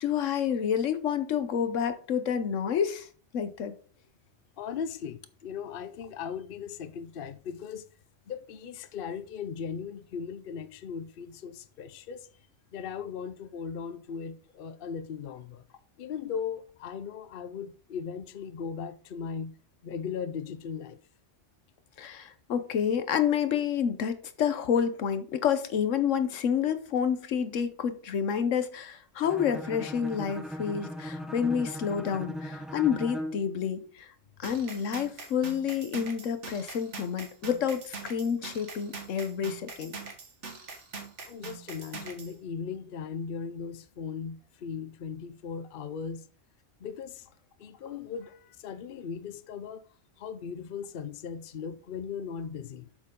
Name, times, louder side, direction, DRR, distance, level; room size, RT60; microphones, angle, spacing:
voice 1, 0.0-3.1 3.3-3.7 22.0-34.1 34.4-39.9, left 8 dB, 85° left, 1.2 m, -29 dB
voice 2, 4.6-7.9 8.3-12.3 12.7-15.6 16.0-19.5 19.8-21.0 41.3-46.3 46.8-47.3 47.6-49.8 50.2-52.9, left 6 dB, 55° left, 0.8 m, -38 dB
Bowed string instrument, 29.2-33.5, equal, ahead, 0.9 m, -38 dB
sound 1, 34.4-42.3, right 4 dB, 70° right, 1.7 m, -43 dB
7.7 x 6.8 x 3.7 m
omnidirectional pair, 1.3 m